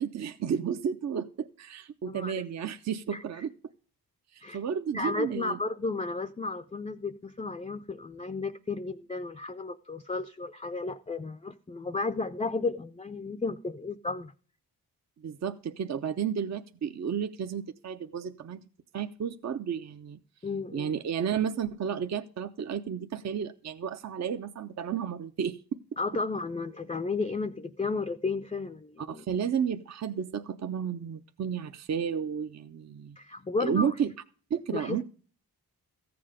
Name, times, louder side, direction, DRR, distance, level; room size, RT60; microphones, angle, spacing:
voice 1, 0.0-3.5 4.3-5.6 15.2-18.6 18.9-20.2 20.7-25.8 29.0-33.2 33.6-34.1 34.5-35.0, right 7 dB, 45° right, 9 dB, 0.6 m, -32 dB
voice 2, 4.9-14.3 20.4-20.9 26.0-29.2 33.2-33.9 34.7-35.0, left 3 dB, 15° left, 10 dB, 0.4 m, -33 dB
14.5 x 7.7 x 5.0 m, 0.43 s
cardioid pair, 90°, 38 cm